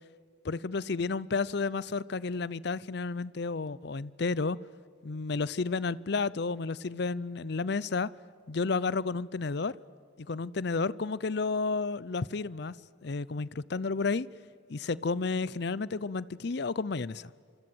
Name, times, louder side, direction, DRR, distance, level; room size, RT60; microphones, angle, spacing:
voice 1, 0.4-4.6 5.0-8.1 8.5-9.7 10.2-12.7 13.0-14.3 14.7-17.3, left 4 dB, 55° left, 21 dB, 0.6 m, -31 dB
26.5 x 24.5 x 7.9 m, 2.3 s
head